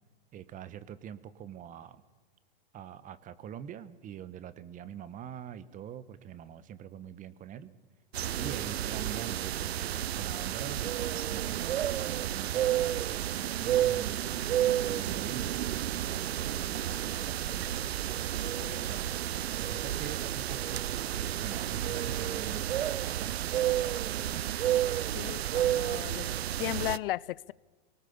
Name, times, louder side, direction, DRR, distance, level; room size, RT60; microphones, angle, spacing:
voice 1, 0.3-2.0 2.7-7.7 8.3-14.3 14.8-17.8 18.9-19.1 19.5-20.9 21.1-24.6, right 9 dB, 25° right, 1.1 m, -44 dB
sound 1, 8.1-27.0, right 12 dB, 90° right, 0.6 m, -31 dB
Piano, 14.2-25.5, left 6 dB, 10° left, 2.3 m, -56 dB
voice 2, 18.4-18.9 25.1-27.5, left 15 dB, 65° left, 0.6 m, -36 dB
22.5 x 19.0 x 7.1 m
hypercardioid pair, 125°, 30 cm